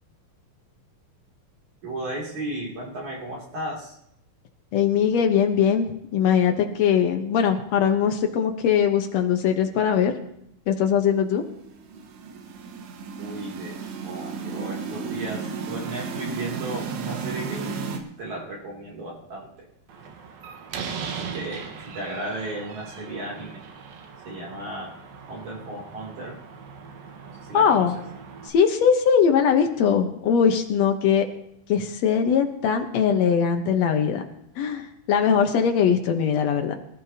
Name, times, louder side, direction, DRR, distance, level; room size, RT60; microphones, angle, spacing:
voice 1, 1.8-4.0 13.2-13.8 14.0-17.8 18.2-19.7 21.1-23.6 24.2-25.0 25.3-26.4 27.5-28.0, right 1 dB, 50° right, -3 dB, 4.0 m, -35 dB
voice 2, 4.7-10.1 10.7-11.4 27.5-28.0 28.5-31.2 31.7-34.2 34.6-36.7, left 7 dB, 75° left, 4 dB, 1.5 m, -21 dB
sound 1, 11.6-18.0, right 5 dB, 90° right, 3.5 m, -34 dB
Slam, 19.9-28.5, right 6 dB, 70° right, 3.0 m, -39 dB
24.0 x 13.5 x 2.8 m, 0.77 s
omnidirectional pair, 4.6 m